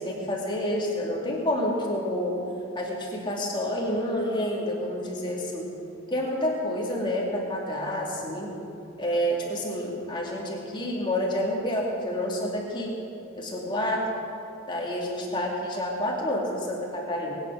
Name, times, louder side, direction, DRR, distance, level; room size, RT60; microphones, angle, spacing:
voice 1, 0.0-2.4 2.7-5.7 6.1-8.5 9.0-12.9 13.4-14.0 14.7-17.3, left 1 dB, 25° left, -2 dB, 2.5 m, -29 dB
21.0 x 9.3 x 6.3 m, 2.9 s
head